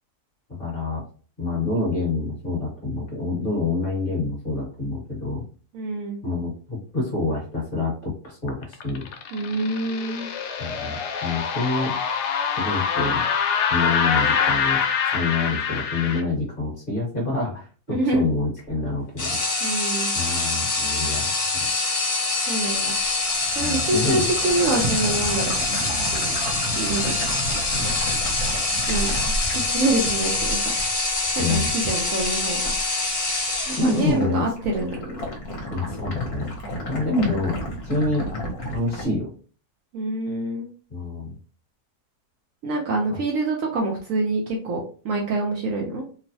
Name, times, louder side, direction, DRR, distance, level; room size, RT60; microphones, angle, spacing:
voice 1, 0.6-1.0 1.4-5.4 6.2-9.1 10.6-11.9 12.6-13.3 13.7-14.8 15.1-19.4 20.1-21.7 23.6-24.2 31.4-31.7 33.8-34.5 35.7-36.5 36.9-38.3 38.7-39.3 40.9-41.3 43.1-43.2, left 3 dB, 35° left, -3 dB, 1.2 m, -27 dB
voice 2, 5.7-6.2 9.3-10.3 17.9-18.3 19.6-20.1 22.5-22.9 23.5-25.6 26.8-27.1 28.9-30.6 31.4-32.7 33.7-35.3 39.9-40.7 42.6-46.0, right 2 dB, 70° right, -1 dB, 0.9 m, -26 dB
sound 1, 8.5-16.2, left 6 dB, 90° left, 1.2 m, -25 dB
sound 2, 19.2-34.2, left 2 dB, 55° left, 1.4 m, -25 dB
sound 3, 22.6-32.9 33.3-33.8 34.0-39.1, equal, 70° left, 1.2 m, -32 dB
3.0 x 2.1 x 2.7 m, 0.39 s
omnidirectional pair, 1.7 m